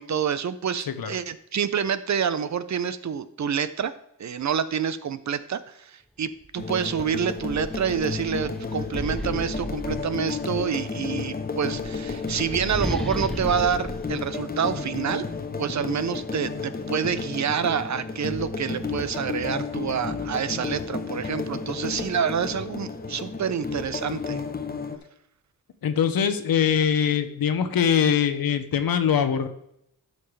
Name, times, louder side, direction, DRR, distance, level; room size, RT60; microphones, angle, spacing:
voice 1, 0.0-3.9 4.2-15.2 15.6-24.4, right 7 dB, 50° right, 13 dB, 0.6 m, -27 dB
sound 1, 6.4-6.6 7.0-10.6 11.5-15.2, equal, ahead, 0.5 m, -35 dB
sound 2, 6.6-25.0, left 4 dB, 25° left, 0.9 m, -32 dB
voice 2, 25.8-29.5, left 8 dB, 75° left, 9 dB, 1.0 m, -22 dB
12.5 x 5.7 x 3.3 m, 0.76 s
wide cardioid pair, 110°, 35 cm